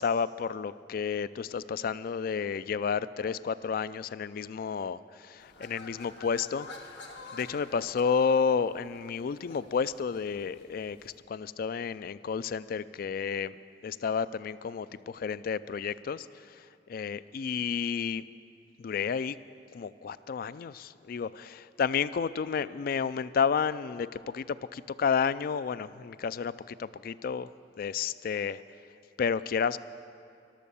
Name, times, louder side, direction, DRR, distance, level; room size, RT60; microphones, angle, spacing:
voice 1, 0.0-6.7 7.3-13.5 13.8-16.3 16.9-18.2 18.8-19.4 19.7-27.5 27.8-28.6 29.2-29.8, left 6 dB, 55° left, 16 dB, 0.3 m, -31 dB
sound 1, 5.4-11.2, left 2 dB, 85° left, 1.4 m, -49 dB
13.5 x 12.0 x 6.9 m, 2.4 s
head